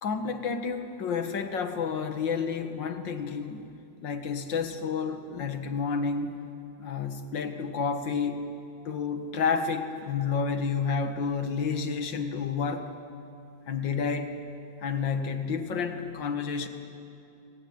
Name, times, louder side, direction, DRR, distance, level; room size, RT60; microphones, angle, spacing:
voice 1, 0.0-3.7 4.0-6.4 6.8-8.4 8.9-12.9 13.7-14.3 14.8-16.7, left 5 dB, 90° left, 7 dB, 2.1 m, -30 dB
25.0 x 18.0 x 9.3 m, 2.6 s
omnidirectional pair, 1.9 m